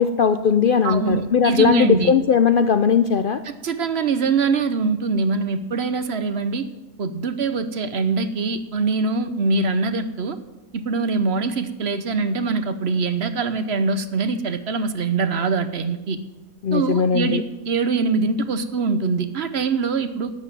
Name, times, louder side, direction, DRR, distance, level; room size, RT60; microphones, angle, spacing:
voice 1, 0.0-3.4 16.6-17.4, left 6 dB, 55° left, 10 dB, 0.6 m, -18 dB
voice 2, 0.8-2.1 3.5-6.6 7.0-10.4 10.7-16.2 16.7-17.4 17.6-20.3, right 4 dB, 55° right, 10 dB, 1.1 m, -23 dB
12.0 x 8.0 x 9.1 m, 1.0 s
omnidirectional pair, 1.4 m